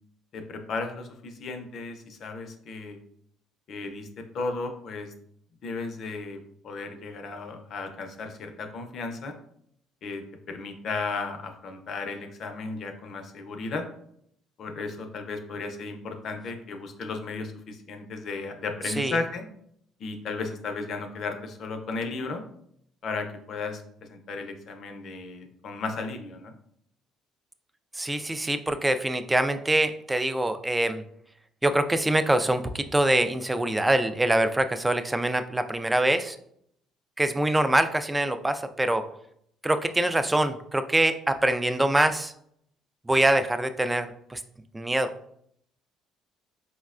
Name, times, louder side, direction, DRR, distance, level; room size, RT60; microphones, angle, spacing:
voice 1, 0.3-3.0 3.7-5.1 5.6-9.3 10.0-13.8 14.6-19.5 20.0-22.4 23.0-23.8 24.1-26.5, left 3 dB, 55° left, 6 dB, 0.5 m, -35 dB
voice 2, 28.0-31.0 31.6-36.4 37.2-39.0 39.6-42.3 43.1-44.4 44.7-45.1, right 1 dB, 10° right, 10 dB, 0.3 m, -24 dB
4.7 x 2.1 x 2.4 m, 0.70 s
supercardioid pair, 90°, 0 cm